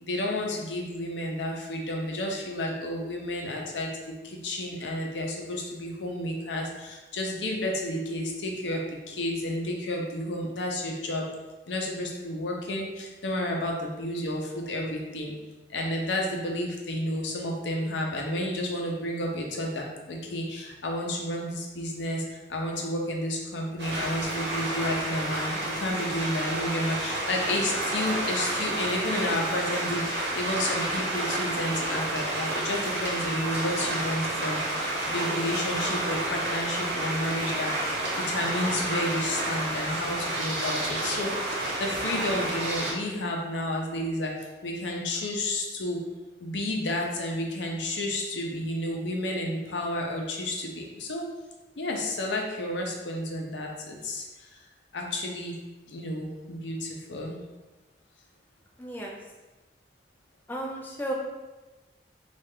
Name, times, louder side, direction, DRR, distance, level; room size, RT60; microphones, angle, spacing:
voice 1, 0.0-11.2 11.7-15.3 15.7-46.0 46.4-51.3 51.8-54.5 54.9-55.5 55.9-57.4, left 1 dB, 85° left, 0 dB, 0.6 m, -31 dB
sound 1, 23.8-42.9, right 1 dB, 65° right, 0.9 m, -30 dB
voice 2, 58.8-59.2 60.5-61.1, right 1 dB, 10° left, -2 dB, 0.3 m, -33 dB
3.2 x 2.4 x 3.4 m, 1.1 s
head